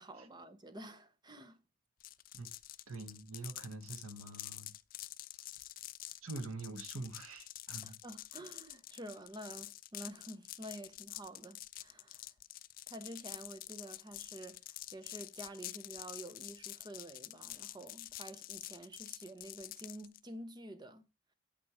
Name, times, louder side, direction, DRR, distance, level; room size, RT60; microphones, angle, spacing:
voice 1, 0.0-1.6 7.8-12.3 12.9-21.0, right 1 dB, 20° right, 0.7 m, -49 dB
sound 1, 2.0-20.2, left 15 dB, 40° left, 0.3 m, -48 dB
voice 2, 2.9-4.7 6.2-8.0, right 2 dB, 85° right, 1.1 m, -45 dB
8.8 x 4.4 x 4.7 m
head